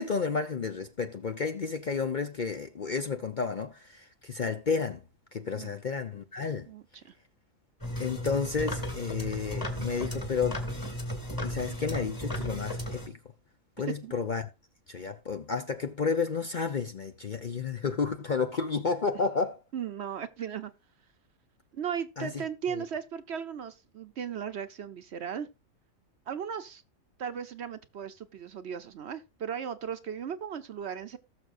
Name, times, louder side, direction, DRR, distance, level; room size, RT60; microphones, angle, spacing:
voice 1, 0.0-5.0 5.3-6.7 8.0-10.6 10.9-11.0 11.4-13.2 13.8-14.5 14.9-19.6 22.2-22.4 22.7-22.8, left 5 dB, 45° left, 0.6 m, -31 dB
voice 2, 6.7-7.1 14.0-14.1 19.7-20.7 21.7-25.5 26.3-26.8 27.2-31.2, right 8 dB, 60° right, 0.9 m, -36 dB
sound 1, 7.8-13.1, equal, 15° left, 2.0 m, -35 dB
18.5 x 6.6 x 2.5 m
omnidirectional pair, 1.4 m